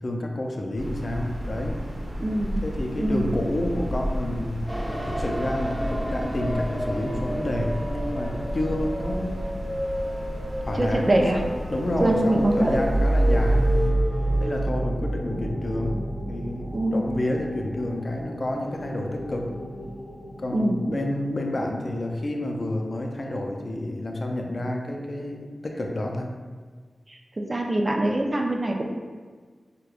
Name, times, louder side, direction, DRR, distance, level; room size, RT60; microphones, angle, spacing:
voice 1, 0.0-1.8 2.6-4.6 5.0-9.6 10.6-11.2 11.7-13.7 14.4-19.5 20.4-26.3, left 1 dB, 50° left, 1 dB, 0.4 m, -29 dB
sound 1, 0.7-13.9, equal, 70° right, 0.9 m, -33 dB
voice 2, 2.2-2.6 3.0-3.3 10.7-11.4 12.0-12.8 16.7-17.0 20.5-20.8 27.1-27.2 27.5-28.9, right 1 dB, 35° right, 0 dB, 0.4 m, -23 dB
sound 2, 4.7-14.6, equal, 20° right, 0.8 m, -32 dB
sound 3, 12.6-22.0, right 1 dB, 25° left, 1.0 m, -27 dB
4.7 x 2.2 x 2.4 m, 1.5 s
cardioid pair, 45°, 0 cm